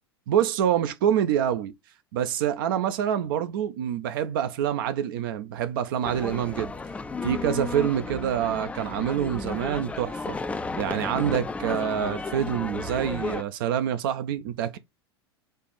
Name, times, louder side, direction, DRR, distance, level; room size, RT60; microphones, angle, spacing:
voice 1, 0.3-1.7 2.1-6.7 7.2-10.4 10.8-14.8, right 9 dB, 55° right, 0.5 m, -26 dB
sound 1, 6.0-13.4, left 3 dB, 10° left, 0.4 m, -33 dB
4.4 x 2.5 x 4.7 m
figure-of-eight pair, 85°, 14 cm